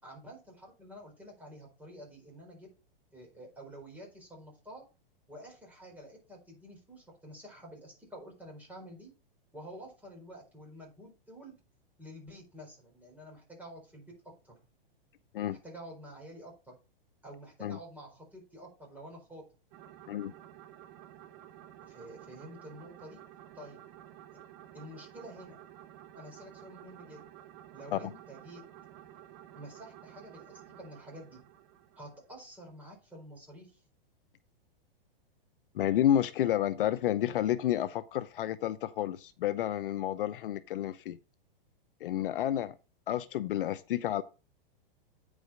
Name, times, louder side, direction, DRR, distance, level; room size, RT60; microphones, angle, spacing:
voice 1, 0.0-2.7 3.1-4.8 5.3-9.1 9.5-11.5 12.0-14.1 14.4-14.6 15.5-16.8 17.2-19.4 21.8-23.2 23.5-23.8 24.7-25.6 26.1-27.2 27.7-28.6 29.5-31.4 32.0-33.8, equal, 5° right, 4.3 m, -49 dB
sound 1, 19.7-32.5, right 12 dB, 35° right, 0.9 m, -52 dB
voice 2, 35.7-41.2 42.0-42.7 43.1-44.2, left 11 dB, 65° left, 0.7 m, -30 dB
9.1 x 5.0 x 5.0 m
hypercardioid pair, 145°, 29 cm